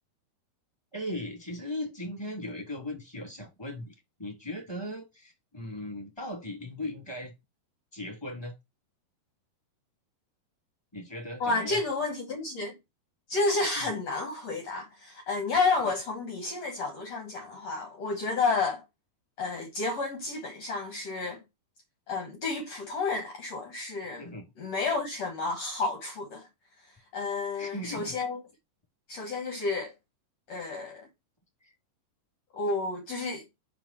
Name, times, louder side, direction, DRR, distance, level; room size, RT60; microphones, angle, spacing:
voice 1, 0.9-3.9 4.2-7.3 7.9-8.5 10.9-11.8 13.8-13.9 24.2-24.4 27.6-28.1 31.6-31.7, left 1 dB, 10° left, 2.2 m, -38 dB
voice 2, 11.4-12.8 13.3-18.8 19.4-21.4 22.1-26.5 27.1-28.4 29.1-29.9 30.5-31.1 32.5-33.4, left 3 dB, 60° left, 1.8 m, -31 dB
6.0 x 5.2 x 4.4 m
omnidirectional pair, 4.7 m